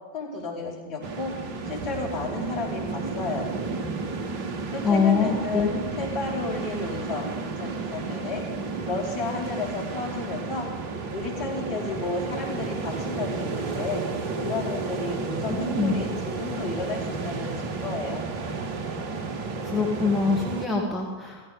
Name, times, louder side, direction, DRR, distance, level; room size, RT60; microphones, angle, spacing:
voice 1, 0.1-1.3 1.6-3.5 4.7-7.3 7.6-8.4 8.8-10.7 11.1-14.0 14.4-18.3, left 3 dB, 45° left, -1 dB, 4.8 m, -32 dB
sound 1, 1.0-20.7, right 4 dB, 45° right, 1.5 m, -32 dB
voice 2, 4.8-5.8 15.5-15.9 19.6-21.5, left 4 dB, 10° left, -2 dB, 2.2 m, -24 dB
16.0 x 14.5 x 5.4 m, 1.4 s
figure-of-eight pair, 90°, 0 cm